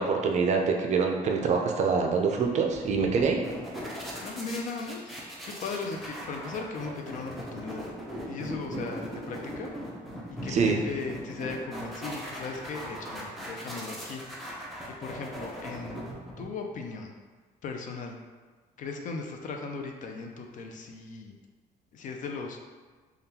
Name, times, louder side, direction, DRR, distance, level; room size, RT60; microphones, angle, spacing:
voice 1, 0.0-3.4 10.5-10.8, right 5 dB, 45° right, 2 dB, 0.4 m, -25 dB
sound 1, 2.4-16.7, equal, ahead, 0.6 m, -39 dB
voice 2, 4.2-5.1 5.4-7.9 8.3-9.7 10.4-14.2 15.0-16.0 16.4-17.1 17.6-18.2 18.8-21.3 21.9-22.7, left 4 dB, 50° left, 3 dB, 0.4 m, -37 dB
3.5 x 2.3 x 2.8 m, 1.4 s
cardioid pair, 110°, 17 cm